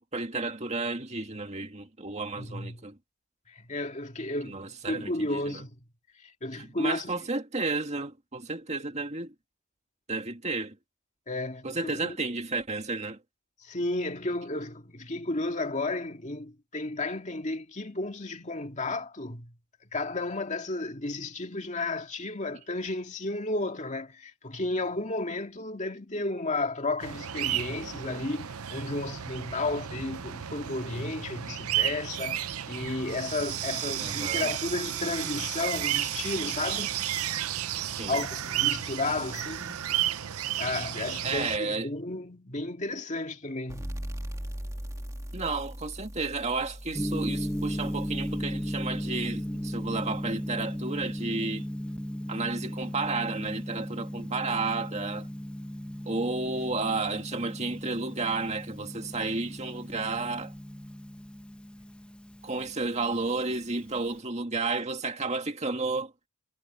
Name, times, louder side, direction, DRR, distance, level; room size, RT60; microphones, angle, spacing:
voice 1, 0.0-3.0 4.4-5.6 6.6-9.3 10.1-10.8 11.6-13.2 34.0-34.5 37.8-38.3 41.2-41.9 45.3-51.7 52.3-55.3 56.1-60.5 62.4-66.1, right 3 dB, 30° right, 2.1 m, -32 dB
voice 2, 2.4-2.8 3.5-4.6 4.9-5.8 6.2-7.3 11.3-12.2 13.6-19.5 19.9-37.0 38.1-39.9 40.6-43.9, left 2 dB, 30° left, 2.3 m, -33 dB
sound 1, 27.0-41.6, right 12 dB, 75° right, 0.7 m, -32 dB
sound 2, 43.7-51.0, equal, 15° right, 2.1 m, -41 dB
Gong, 46.9-64.2, equal, 5° left, 0.8 m, -36 dB
head